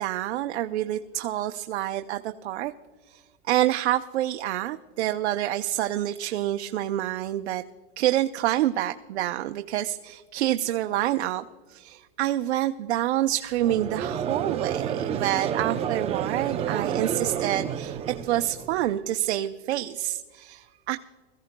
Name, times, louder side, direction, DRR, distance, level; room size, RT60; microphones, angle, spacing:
voice 1, 0.0-2.7 3.1-7.6 8.0-21.0, right 13 dB, 85° right, 7 dB, 0.6 m, -27 dB
Conversation / Crowd, 13.6-18.9, right 8 dB, 20° right, 0.6 m, -30 dB
22.0 x 15.0 x 2.2 m, 1.5 s
supercardioid pair, 150°, 32 cm